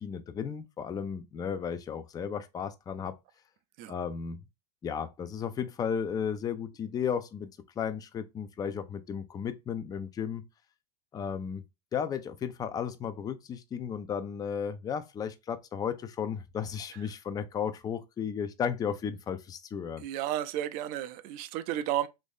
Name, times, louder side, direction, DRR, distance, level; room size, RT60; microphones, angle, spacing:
voice 1, 0.0-3.2 3.9-4.4 4.8-7.5 7.8-10.5 11.1-11.6 11.9-20.1, left 7 dB, 20° left, 0.4 m, -34 dB
voice 2, 20.0-22.1, right 12 dB, 45° right, 0.5 m, -32 dB
3.0 x 2.6 x 3.4 m
hypercardioid pair, 100°, 20 cm